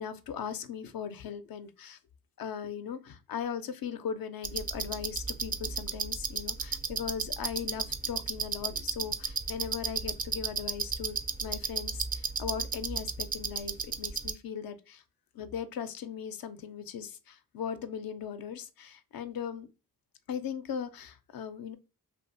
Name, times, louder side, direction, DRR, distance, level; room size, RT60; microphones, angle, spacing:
voice 1, 0.0-2.0 2.4-15.0 15.3-19.7 20.3-21.8, left 7 dB, 65° left, 0.5 m, -38 dB
sound 1, 4.4-14.3, right 5 dB, 25° right, 0.3 m, -34 dB
2.7 x 2.3 x 2.5 m
cardioid pair, 45°, 38 cm